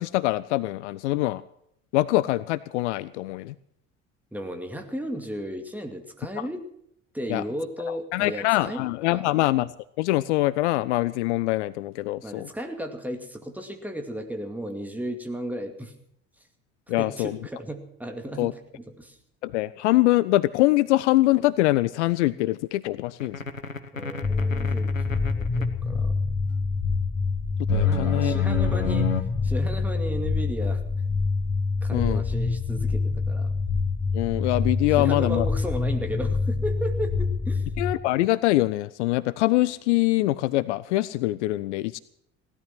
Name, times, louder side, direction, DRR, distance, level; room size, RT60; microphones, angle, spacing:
voice 1, 0.0-1.4 1.9-3.5 7.3-7.4 8.1-9.7 10.0-12.5 16.9-17.4 18.4-18.5 19.4-23.4 27.7-28.3 31.9-32.2 34.1-35.5 37.8-42.0, left 17 dB, 60° left, 18 dB, 0.5 m, -24 dB
voice 2, 4.3-6.6 7.1-8.8 9.1-9.4 12.2-15.9 17.0-19.2 23.9-26.2 27.8-29.1 29.4-30.8 31.8-33.5 35.0-37.7, equal, 5° right, 5 dB, 2.3 m, -34 dB
sound 1, 23.2-25.6 27.7-29.2, left 6 dB, 90° left, 0.9 m, -28 dB
sound 2, 24.2-37.9, left 4 dB, 30° left, 2.0 m, -26 dB
17.0 x 12.5 x 5.9 m, 0.72 s
figure-of-eight pair, 60°, 38 cm